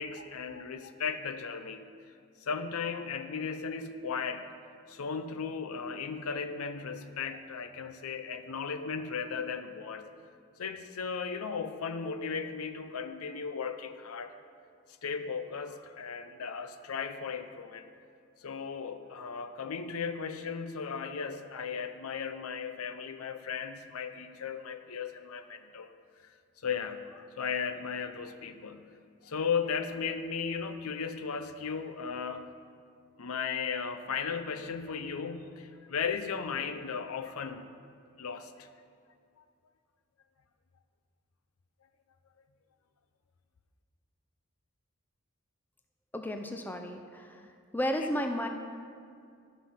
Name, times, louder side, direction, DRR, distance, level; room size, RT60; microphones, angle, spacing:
voice 1, 0.0-1.9 2.4-4.5 4.9-10.1 10.6-14.3 15.0-17.9 18.4-25.9 26.6-28.8 29.2-32.6 33.2-37.8 38.2-38.7, left 6 dB, 85° left, 9 dB, 0.6 m, -36 dB
voice 2, 46.1-48.5, equal, 10° left, 4 dB, 0.4 m, -33 dB
12.5 x 5.5 x 5.7 m, 2.3 s
head